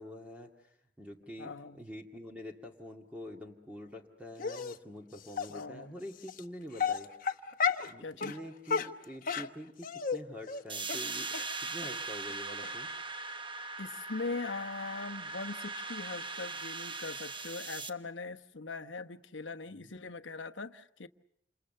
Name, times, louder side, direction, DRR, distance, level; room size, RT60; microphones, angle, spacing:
voice 1, 0.0-7.1 7.8-12.9 19.7-19.9, equal, 10° right, 2.1 m, -46 dB
voice 2, 1.4-1.8 5.5-6.0 8.0-8.4 13.8-21.1, left 3 dB, 70° left, 1.1 m, -41 dB
Dog, 4.4-4.8 5.4-5.5 6.3-6.4 6.8-7.9 8.2-8.4 8.7-10.2 10.5-10.6 10.9-11.0 11.3-11.4 11.8-11.9 12.3-12.4 12.6-12.7, left 6 dB, 50° left, 1.1 m, -32 dB
sound 1, 10.7-17.9, right 3 dB, 25° right, 1.1 m, -40 dB
28.5 x 28.0 x 6.7 m
head